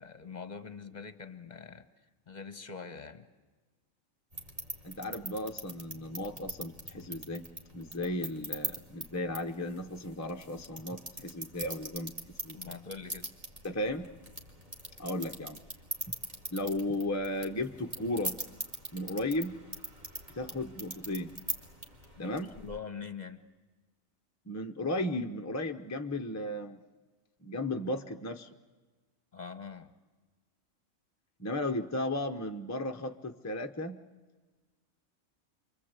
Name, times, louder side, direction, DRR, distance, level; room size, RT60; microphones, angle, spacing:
voice 1, 0.0-1.9 2.3-3.3 12.5-13.3 22.2-23.4 29.3-29.9, left 5 dB, 35° left, 11 dB, 1.2 m, -44 dB
sound 1, 4.3-22.8, right 1 dB, 25° right, 2.2 m, -43 dB
voice 2, 4.8-7.4 7.7-12.8 13.6-14.1 15.0-15.6 16.1-16.2 16.5-18.4 18.9-19.6 20.3-21.3 22.2-22.5 24.5-26.8 27.4-28.5 31.4-34.0, left 1 dB, 15° left, 4 dB, 0.6 m, -35 dB
28.5 x 23.5 x 8.1 m, 1.3 s
omnidirectional pair, 1.4 m